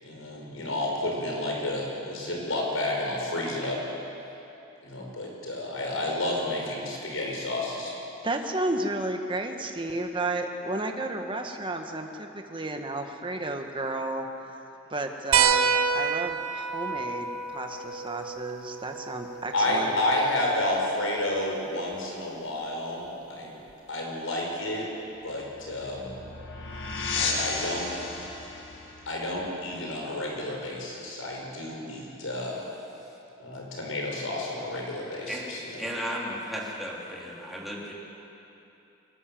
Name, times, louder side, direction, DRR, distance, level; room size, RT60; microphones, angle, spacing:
voice 1, 0.0-3.8 4.8-7.9 19.5-23.5 23.9-24.9 25.2-26.2 27.1-27.9 29.1-32.6 33.4-35.6, left 1 dB, 80° left, -1 dB, 5.6 m, -30 dB
voice 2, 8.2-14.2 14.9-19.9, right 2 dB, 25° right, 4 dB, 1.5 m, -32 dB
sound 1, 15.3-20.4 21.9-22.0 23.7-23.8, right 6 dB, 80° right, 1.0 m, -28 dB
sound 2, 25.2-30.6, left 3 dB, 60° left, 2.4 m, -34 dB
voice 3, 35.7-37.9, equal, ahead, -5 dB, 3.8 m, -34 dB
23.5 x 19.0 x 7.7 m, 2.9 s
head